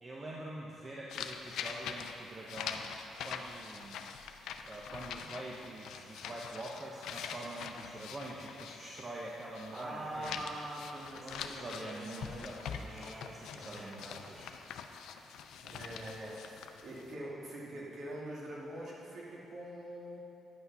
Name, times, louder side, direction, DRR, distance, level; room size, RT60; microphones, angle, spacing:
voice 1, 0.0-2.9 3.2-4.0 4.6-10.5 11.1-14.5, right 1 dB, 30° right, -4 dB, 0.9 m, -45 dB
sound 1, 1.1-9.9 10.1-17.1, left 7 dB, 80° left, 0.5 m, -44 dB
voice 2, 9.7-14.2 15.6-20.2, right 1 dB, 55° right, -5 dB, 2.4 m, -44 dB
10.0 x 5.9 x 5.6 m, 2.9 s
cardioid pair, 90°, 0 cm